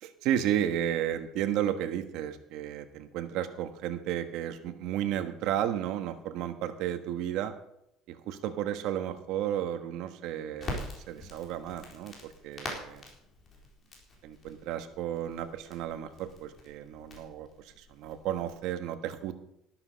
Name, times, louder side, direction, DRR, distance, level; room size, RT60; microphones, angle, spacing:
voice 1, 0.0-7.5 8.1-12.1 12.4-13.0 14.2-19.3, right 11 dB, 65° right, 8 dB, 1.4 m, -33 dB
Crackle, 10.6-18.5, left 2 dB, 30° left, 4.1 m, -44 dB
12.5 x 12.0 x 5.2 m, 0.79 s
cardioid pair, 150°, 0 cm